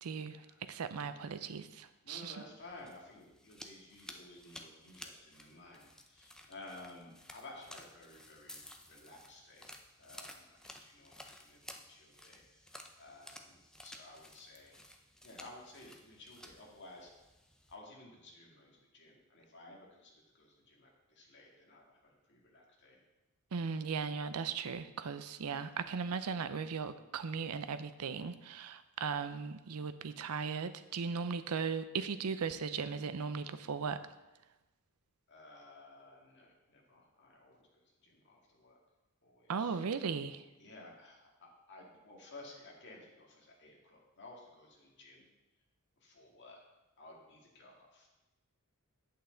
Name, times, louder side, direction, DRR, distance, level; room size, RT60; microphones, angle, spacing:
voice 1, 0.0-0.4 0.7-2.3 23.5-34.0 39.5-40.4, right 5 dB, 85° right, 12 dB, 0.5 m, -37 dB
voice 2, 0.9-1.4 2.0-9.7 10.0-14.8 15.2-17.1 17.7-23.0 35.3-38.8 39.2-40.1 40.6-45.3 46.0-46.6 47.0-48.1, left 2 dB, 55° left, -1 dB, 1.9 m, -55 dB
sound 1, 2.5-17.8, left 1 dB, 5° left, 0.5 m, -54 dB
8.5 x 8.0 x 3.9 m, 1.1 s
head